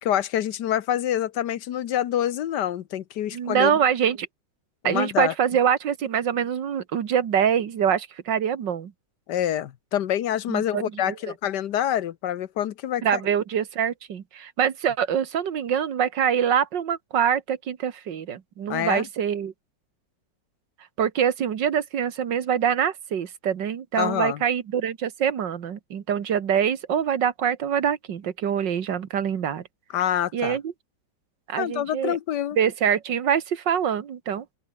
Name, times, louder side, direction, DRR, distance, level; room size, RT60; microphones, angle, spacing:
voice 1, 0.0-3.8 4.8-5.3 9.3-13.2 18.7-19.1 24.0-24.4 29.9-30.6 31.6-32.6, left 11 dB, 75° left, 1.5 m, -26 dB
voice 2, 3.3-4.3 4.8-8.9 10.5-11.1 13.0-19.5 21.0-29.6 30.3-30.7 31.5-32.2 32.6-34.5, right 8 dB, 90° right, 2.1 m, -24 dB
open air
omnidirectional pair, 1.9 m